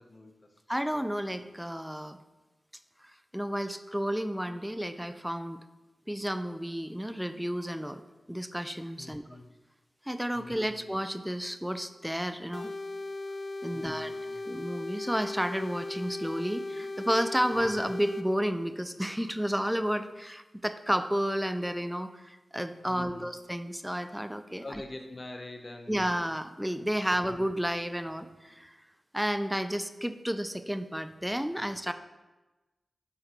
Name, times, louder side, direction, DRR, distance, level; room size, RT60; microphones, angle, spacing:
voice 1, 0.0-0.5 9.0-9.5 10.3-10.8 13.7-14.4 17.5-17.7 22.9-23.3 24.6-26.1 27.1-27.2, left 2 dB, 45° left, 4 dB, 0.8 m, -45 dB
voice 2, 0.7-2.2 3.3-5.6 6.1-8.0 8.3-9.2 10.1-12.7 13.6-14.1 14.4-24.8 25.9-28.8 29.1-31.9, equal, 5° right, 10 dB, 0.4 m, -31 dB
sound 1, 12.5-18.3, left 2 dB, 65° left, 0.3 m, -38 dB
9.5 x 3.9 x 3.0 m, 1.1 s
cardioid pair, 45°, 0 cm